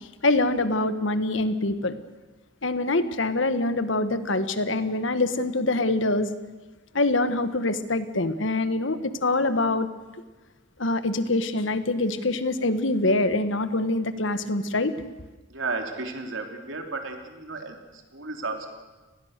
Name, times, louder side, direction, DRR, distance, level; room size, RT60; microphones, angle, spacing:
voice 1, 0.2-1.9 2.6-6.3 6.9-9.9 10.8-14.9, left 2 dB, 65° left, 11 dB, 1.5 m, -24 dB
voice 2, 15.5-18.7, right 3 dB, 70° right, 4 dB, 3.4 m, -33 dB
30.0 x 20.5 x 6.8 m, 1.2 s
head